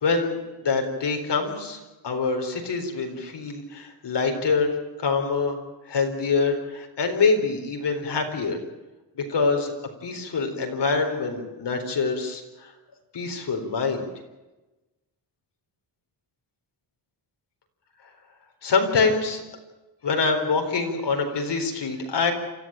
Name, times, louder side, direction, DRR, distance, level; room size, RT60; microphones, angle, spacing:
voice 1, 0.0-4.8 5.0-5.6 5.9-8.6 9.2-9.7 10.0-12.7 13.1-14.1 18.6-19.4 20.0-22.3, left 4 dB, 60° left, 4 dB, 4.3 m, -25 dB
28.5 x 14.5 x 9.0 m, 1.1 s
wide cardioid pair, 155°, 47 cm